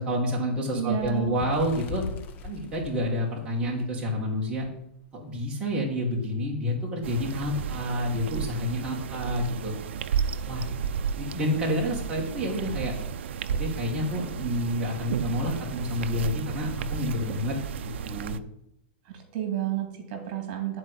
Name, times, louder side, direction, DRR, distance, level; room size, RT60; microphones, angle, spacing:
voice 1, 0.0-2.0 2.4-4.7 5.1-9.7 10.5-10.7 11.2-12.9 13.5-17.5 18.0-18.4, equal, 15° right, -4 dB, 2.1 m, -29 dB
voice 2, 0.7-1.4 19.1-20.8, right 10 dB, 45° right, 4 dB, 2.5 m, -31 dB
Bird, 1.0-4.2 4.6-4.8 5.1-5.3 6.1-6.2, left 4 dB, 25° left, 1.0 m, -39 dB
sound 1, 7.0-18.4, right 7 dB, 75° right, 0.6 m, -33 dB
10.5 x 4.8 x 8.2 m, 0.76 s
supercardioid pair, 155°, 6 cm